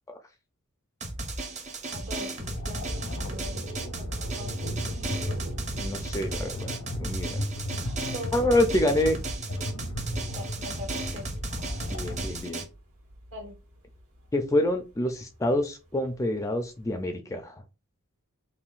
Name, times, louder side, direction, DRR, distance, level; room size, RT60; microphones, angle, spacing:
Drum, 1.0-12.6, right 2 dB, 30° right, 0.7 m, -35 dB
Thunder, 1.5-17.1, right 1 dB, 80° right, 1.6 m, -44 dB
voice 1, 1.9-4.7 7.7-8.5 10.1-11.3 13.3-13.6, left 1 dB, 60° right, 4 dB, 1.0 m, -43 dB
sound 1, 2.4-12.4, left 1 dB, 90° left, 0.8 m, -36 dB
voice 2, 5.7-6.7 7.0-7.4 8.3-9.2 11.9-12.6 14.3-17.5, left 1 dB, 15° left, 6 dB, 0.3 m, -27 dB
5.5 x 2.2 x 2.4 m, 0.29 s
head